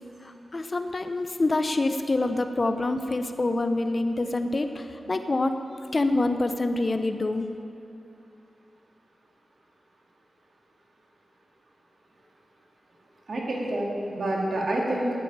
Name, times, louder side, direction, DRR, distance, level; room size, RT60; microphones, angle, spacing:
voice 1, 0.5-5.5 5.9-7.5, left 2 dB, 40° left, 8 dB, 0.9 m, -26 dB
voice 2, 13.3-15.2, right 1 dB, 70° right, -2 dB, 2.8 m, -28 dB
11.0 x 8.8 x 8.8 m, 2.8 s
cardioid pair, 65°, 0 cm